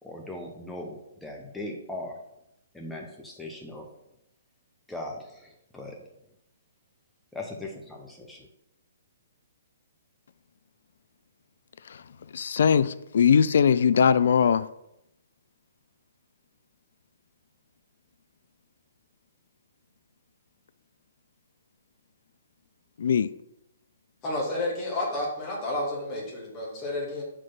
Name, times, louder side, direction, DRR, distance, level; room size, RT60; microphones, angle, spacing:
voice 1, 0.0-2.2 2.7-3.9 4.9-6.1 7.3-8.5, left 1 dB, 5° left, 0.7 m, -39 dB
voice 2, 12.3-14.7 23.0-23.3, left 7 dB, 60° left, 0.3 m, -21 dB
voice 3, 24.2-27.2, left 1 dB, 25° left, 2.1 m, -31 dB
4.5 x 4.4 x 5.9 m
figure-of-eight pair, 125°, 0 cm